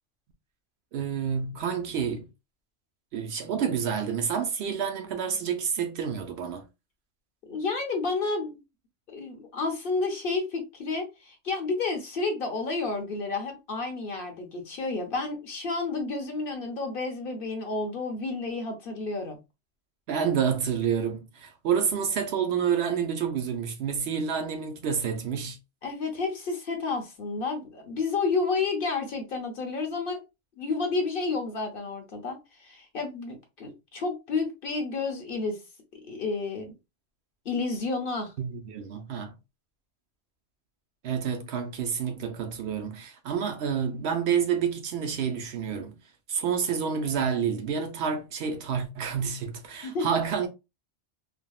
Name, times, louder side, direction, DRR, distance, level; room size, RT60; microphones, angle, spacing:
voice 1, 0.9-2.3 3.1-6.6 20.1-25.6 38.4-39.3 41.0-45.9 46.3-50.5, right 7 dB, 65° right, 0.8 m, -29 dB
voice 2, 7.4-8.6 9.1-19.4 25.8-30.2 30.6-35.6 36.1-36.7 37.4-38.3 49.8-50.1, left 3 dB, 55° left, 0.9 m, -30 dB
3.4 x 2.0 x 2.2 m
omnidirectional pair, 1.2 m